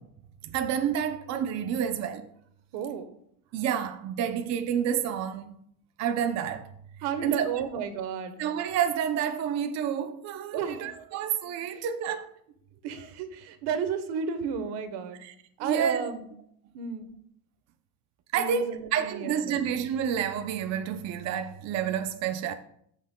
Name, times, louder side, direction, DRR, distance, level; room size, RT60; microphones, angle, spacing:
voice 1, 0.4-2.3 3.5-5.6 6.0-6.7 7.2-7.6 8.4-12.3 15.2-15.3 15.6-16.1 18.3-22.5, right 8 dB, 40° right, 0.5 m, -29 dB
voice 2, 2.7-3.1 7.0-8.3 10.5-11.2 12.8-15.2 15.6-16.2 16.7-17.0 18.3-19.7, right 7 dB, 80° right, 1.2 m, -33 dB
13.0 x 5.8 x 2.2 m
cardioid pair, 145°, 40 cm